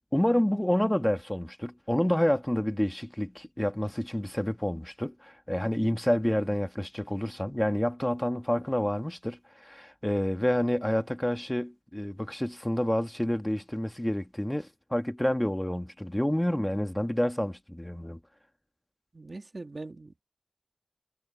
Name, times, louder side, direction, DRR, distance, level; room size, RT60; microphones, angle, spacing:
voice 1, 0.1-18.2, left 1 dB, 15° left, 1.6 m, -28 dB
voice 2, 19.1-20.2, right 3 dB, 70° right, 1.9 m, -42 dB
wide cardioid pair, 40°, 0 cm